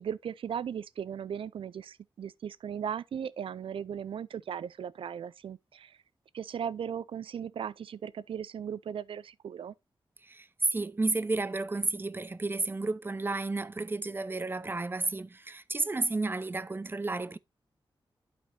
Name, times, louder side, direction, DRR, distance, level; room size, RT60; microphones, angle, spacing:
voice 1, 0.0-6.0 6.3-9.7, right 8 dB, 80° right, 0.5 m, -37 dB
voice 2, 10.2-17.4, right 3 dB, 25° right, 0.6 m, -32 dB
12.0 x 5.1 x 2.7 m
wide cardioid pair, 85°, 9 cm